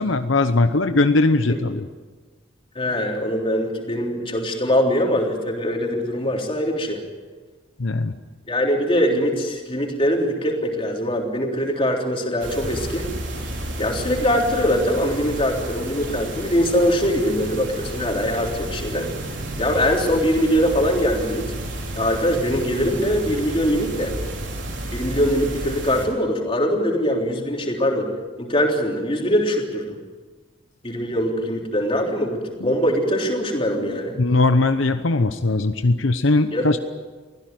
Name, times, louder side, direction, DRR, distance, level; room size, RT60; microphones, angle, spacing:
voice 1, 0.0-1.9 7.8-8.1 32.6-32.8 33.8-36.8, left 2 dB, 75° left, 9 dB, 0.9 m, -20 dB
voice 2, 2.8-7.0 8.5-13.0 13.8-19.1 19.6-21.5 21.9-24.1 24.9-28.1 28.4-30.0 30.8-34.2 36.5-36.8, equal, 25° left, 1 dB, 3.6 m, -22 dB
sound 1, 12.4-26.1, right 1 dB, 65° right, 4.5 m, -31 dB
24.0 x 16.5 x 9.4 m, 1.4 s
head